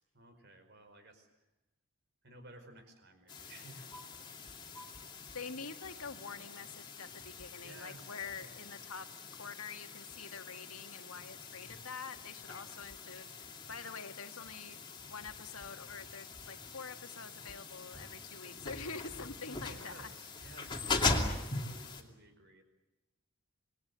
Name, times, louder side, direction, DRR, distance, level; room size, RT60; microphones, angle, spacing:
voice 1, 0.1-1.5 2.2-3.9 7.6-8.7 19.6-22.6, right 2 dB, 50° right, 8 dB, 4.9 m, -56 dB
sound 1, 3.3-22.0, left 3 dB, 20° left, 2.7 m, -41 dB
voice 2, 5.3-14.8 15.1-20.1, left 5 dB, 80° left, 7 dB, 1.9 m, -46 dB
27.0 x 21.0 x 8.3 m, 0.97 s
head